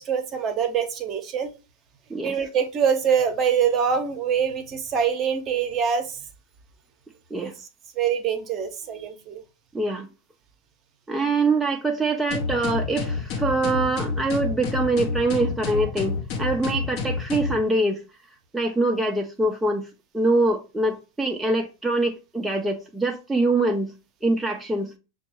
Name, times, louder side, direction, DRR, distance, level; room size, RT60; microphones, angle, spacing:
voice 1, 0.0-1.5 2.2-6.2 7.3-7.5 8.0-9.4, right 7 dB, 35° right, 0.7 m, -24 dB
voice 2, 9.7-10.1 11.1-18.0 18.5-19.9 20.1-23.9 24.2-24.9, right 2 dB, 5° right, 0.5 m, -24 dB
sound 1, 12.3-17.6, left 4 dB, 50° left, 0.8 m, -28 dB
5.9 x 2.3 x 2.9 m
figure-of-eight pair, 90°, 0 cm